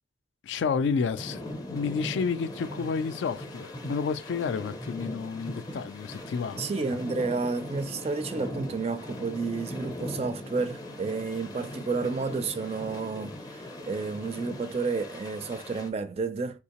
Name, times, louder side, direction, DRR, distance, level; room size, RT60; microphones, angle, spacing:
voice 1, 0.4-1.4 1.7-6.6, left 5 dB, 75° left, 0.3 m, -30 dB
sound 1, 1.2-15.9, left 1 dB, 20° left, 0.5 m, -40 dB
voice 2, 6.6-16.6, right 4 dB, 35° right, 0.3 m, -31 dB
3.6 x 2.7 x 2.9 m
head